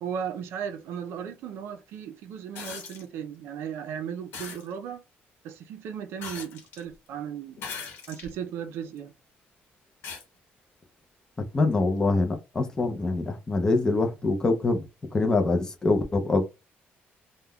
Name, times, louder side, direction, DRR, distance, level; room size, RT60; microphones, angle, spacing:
voice 1, 0.0-5.0 5.4-7.6 8.1-9.1, right 8 dB, 75° right, 0.4 m, -36 dB
sound 1, 2.5-3.0 4.3-4.6 6.2-6.8 7.6-8.3 9.0-9.1 10.0-10.2 11.7-11.8, left 5 dB, 65° left, 0.9 m, -39 dB
voice 2, 11.5-14.8 15.1-16.4, left 3 dB, 15° left, 0.4 m, -24 dB
3.4 x 2.1 x 2.2 m
cardioid pair, 180°, 4 cm